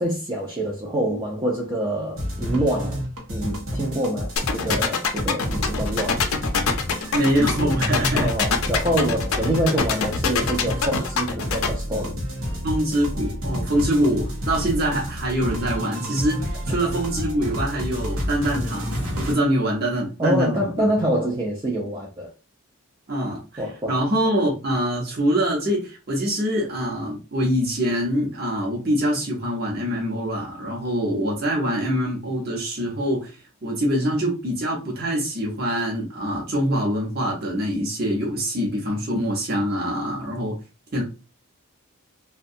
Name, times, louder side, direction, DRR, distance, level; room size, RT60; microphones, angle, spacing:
voice 1, 0.0-3.0 3.3-6.2 8.1-12.2 16.7-16.8 20.2-22.3 23.6-24.0, right 1 dB, 20° right, 0.4 m, -26 dB
sound 1, 2.2-19.3, equal, 85° right, 0.9 m, -30 dB
sound 2, 4.4-11.7, left 6 dB, 75° left, 0.5 m, -23 dB
voice 2, 7.1-8.3 12.6-20.9 23.1-23.6 23.9-33.3 33.6-40.6 40.9-41.0, equal, 45° right, 0.8 m, -24 dB
2.6 x 2.2 x 2.6 m
head